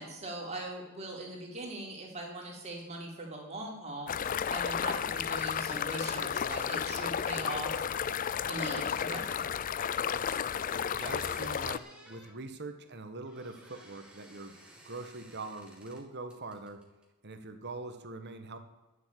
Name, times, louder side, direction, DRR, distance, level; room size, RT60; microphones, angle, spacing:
voice 1, 0.0-7.8 8.5-9.2, right 2 dB, 30° right, -1 dB, 3.9 m, -40 dB
sound 1, 4.1-11.8, left 8 dB, 35° left, 0.4 m, -33 dB
voice 2, 10.1-14.6 14.8-16.8 17.2-18.6, right 3 dB, 50° right, 8 dB, 1.6 m, -43 dB
sound 2, 10.6-12.3 13.2-16.0 16.3-17.0, right 1 dB, 5° right, 2.4 m, -54 dB
12.5 x 7.5 x 8.5 m, 1.1 s
head